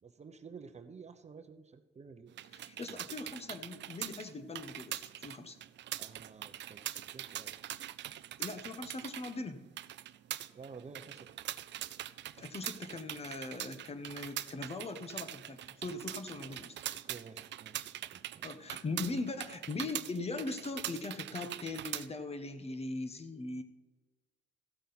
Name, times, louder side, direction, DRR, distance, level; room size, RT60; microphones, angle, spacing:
voice 1, 0.0-2.3 6.0-7.5 10.5-11.3 16.9-17.9 18.1-18.6, right 5 dB, 35° right, 9 dB, 0.8 m, -51 dB
sound 1, 2.3-22.1, right 13 dB, 65° right, 0.5 m, -43 dB
voice 2, 2.5-5.6 8.4-9.6 12.4-16.8 18.4-23.6, left 3 dB, 30° left, 9 dB, 1.1 m, -40 dB
15.0 x 8.2 x 4.1 m, 1.2 s
cardioid pair, 90°, 20 cm